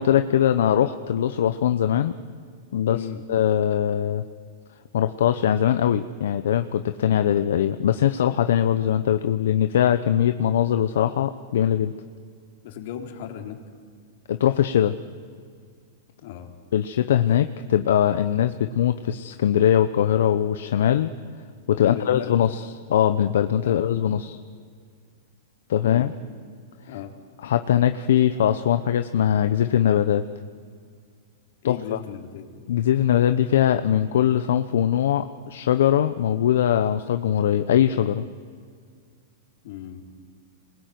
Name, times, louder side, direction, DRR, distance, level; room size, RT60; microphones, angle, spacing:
voice 1, 0.0-2.1 2.7-4.2 4.9-11.9 14.3-14.9 16.7-21.1 21.7-24.4 25.7-26.1 27.4-30.2 31.6-32.0 32.7-38.2, left 10 dB, 75° left, 9 dB, 1.0 m, -21 dB
voice 2, 2.9-3.2 12.6-13.6 16.2-16.5 21.7-22.3 23.6-24.2 25.8-26.1 26.9-27.1 31.6-32.5 39.6-40.0, left 10 dB, 60° left, 4 dB, 3.7 m, -36 dB
28.0 x 21.0 x 9.5 m, 2.1 s
supercardioid pair, 150°, 0 cm